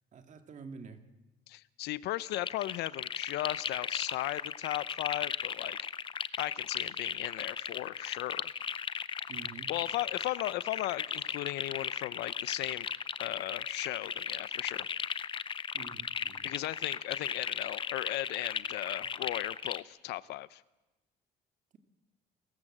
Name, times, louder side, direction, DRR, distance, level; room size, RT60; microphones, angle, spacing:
voice 1, 0.1-1.0 9.3-9.7 15.7-16.5, right 5 dB, 45° right, 6 dB, 2.4 m, -48 dB
voice 2, 1.5-5.8 6.4-8.5 9.7-12.9 13.2-14.9 16.4-20.6, left 16 dB, 80° left, 18 dB, 0.6 m, -36 dB
sound 1, 2.2-19.8, left 6 dB, 30° left, 0.6 m, -36 dB
29.5 x 14.5 x 7.5 m, 1.1 s
cardioid pair, 110°, 17 cm